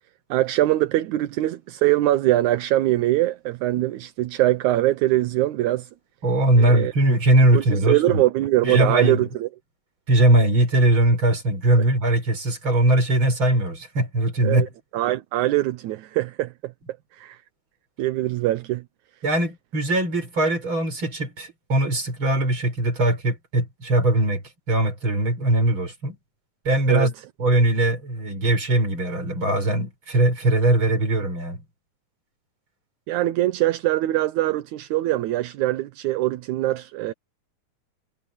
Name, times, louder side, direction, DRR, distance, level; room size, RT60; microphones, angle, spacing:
voice 1, 0.3-5.9 6.6-6.9 7.5-9.5 14.4-14.7 14.9-16.7 17.1-17.4 18.0-18.8 26.9-27.1 33.1-37.1, right 15 dB, 70° right, 2.0 m, -22 dB
voice 2, 6.2-8.2 8.6-9.2 10.1-14.7 19.2-24.4 24.7-26.1 26.6-27.1 27.4-31.6, right 1 dB, 35° right, 6.3 m, -20 dB
omnidirectional pair, 3.9 m